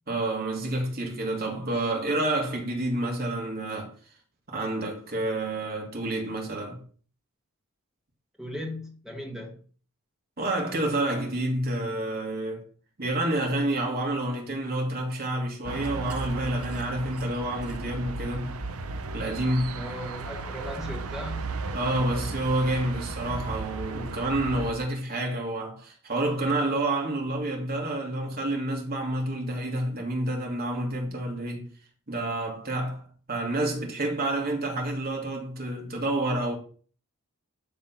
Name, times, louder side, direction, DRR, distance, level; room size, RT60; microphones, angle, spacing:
voice 1, 0.1-3.9 4.5-6.8 10.4-12.6 13.0-18.6 19.1-19.8 21.7-31.7 32.1-33.0 33.3-36.6, right 1 dB, 45° right, 2.6 m, -29 dB
voice 2, 8.4-9.6 19.7-21.5, left 1 dB, ahead, 2.3 m, -37 dB
sound 1, 15.6-24.7, right 3 dB, 80° right, 0.9 m, -35 dB
12.5 x 4.3 x 6.0 m
head